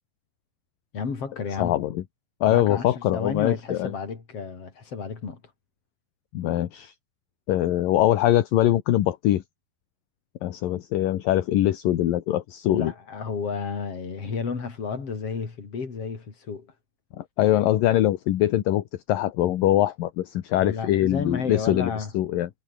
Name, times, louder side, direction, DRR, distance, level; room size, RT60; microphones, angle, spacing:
voice 1, 0.9-1.8 2.5-5.4 12.7-16.7 20.6-22.1, left 5 dB, 40° left, 4.7 m, -32 dB
voice 2, 1.6-2.0 2.4-3.9 6.3-6.9 7.5-9.4 10.4-12.9 17.2-22.5, left 13 dB, 70° left, 2.8 m, -23 dB
omnidirectional pair, 4.5 m